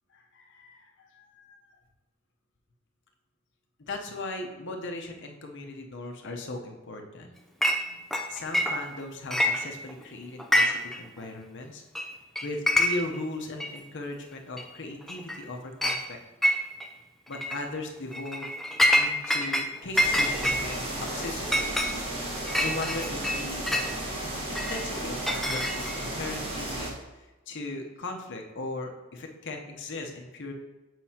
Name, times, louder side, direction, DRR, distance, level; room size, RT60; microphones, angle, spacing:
voice 1, 0.1-1.8 3.8-7.3 8.3-11.8 12.4-16.2 17.3-18.5 18.9-21.7 22.6-23.6 24.5-30.5, left 2 dB, 55° left, 3 dB, 0.8 m, -38 dB
Chink clink, 7.6-7.8 8.1-9.0 9.3-10.0 10.4-11.0 11.2-11.3 11.9-12.1 12.3-13.2 13.6-13.7 14.6-14.7 15.1-15.4 15.8-16.0 16.4-16.9 17.3-17.6 18.1-19.7 20.0-23.9 24.5-26.1, left 1 dB, ahead, 0.4 m, -26 dB
sound 1, 19.9-26.9, right 1 dB, 25° right, 1.3 m, -34 dB
7.5 x 5.4 x 2.8 m, 1.1 s
head